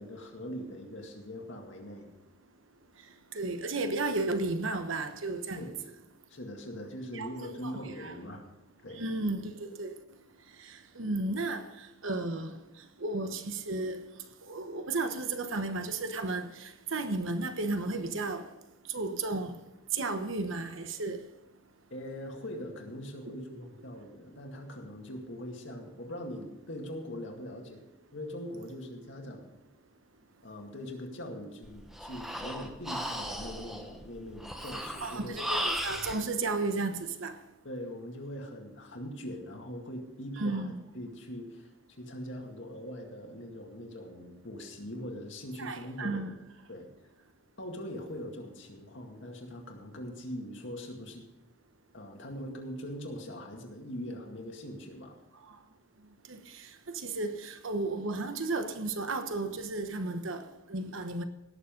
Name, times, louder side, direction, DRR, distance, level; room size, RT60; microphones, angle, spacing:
voice 1, 0.0-2.1 5.6-5.7 6.3-8.4 8.8-9.0 21.9-27.8 28.1-29.5 30.4-35.4 37.6-46.3 46.7-46.9 47.6-51.3 51.9-55.1, equal, 60° left, 2.1 m, -42 dB
voice 2, 3.3-5.7 7.1-7.3 7.6-8.1 9.0-9.9 10.6-11.7 12.0-12.6 13.0-14.0 14.5-18.5 18.9-19.6 19.9-21.2 35.0-37.4 40.4-40.8 45.6-46.3 56.3-61.2, right 3 dB, 70° right, 1.1 m, -33 dB
Breathing, 31.6-36.2, equal, ahead, 0.9 m, -36 dB
18.0 x 7.0 x 5.2 m
head